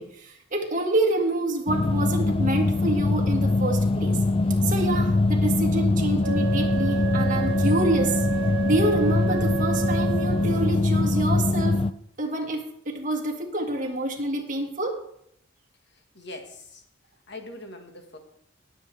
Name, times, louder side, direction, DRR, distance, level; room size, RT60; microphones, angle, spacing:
voice 1, 0.0-4.2 4.6-8.2 8.6-11.8 12.2-15.0, right 2 dB, 40° right, 2 dB, 1.8 m, -27 dB
sound 1, 1.7-11.9, left 2 dB, 25° left, 0.3 m, -23 dB
Wind instrument woodwind instrument, 6.2-10.8, right 10 dB, 75° right, 0.7 m, -31 dB
voice 2, 15.9-16.8 17.3-18.2, left 2 dB, 55° left, 4 dB, 1.6 m, -42 dB
18.5 x 7.5 x 3.4 m, 0.72 s
head